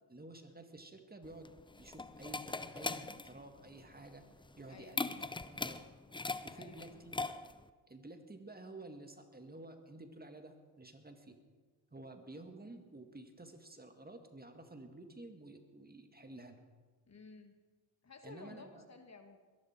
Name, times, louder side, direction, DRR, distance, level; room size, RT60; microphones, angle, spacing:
voice 1, 0.1-4.2 4.6-5.2 5.5-5.8 6.4-7.3 7.9-11.4 11.9-16.6 18.2-18.8, right 2 dB, 20° right, 6 dB, 2.0 m, -52 dB
sound 1, 1.2-7.7, left 3 dB, 10° left, 0.6 m, -41 dB
voice 2, 4.7-5.0 6.5-7.0 17.0-17.6 18.0-19.4, left 4 dB, 35° left, 6 dB, 1.6 m, -54 dB
22.0 x 11.0 x 4.5 m, 1.4 s
supercardioid pair, 55°, 45 cm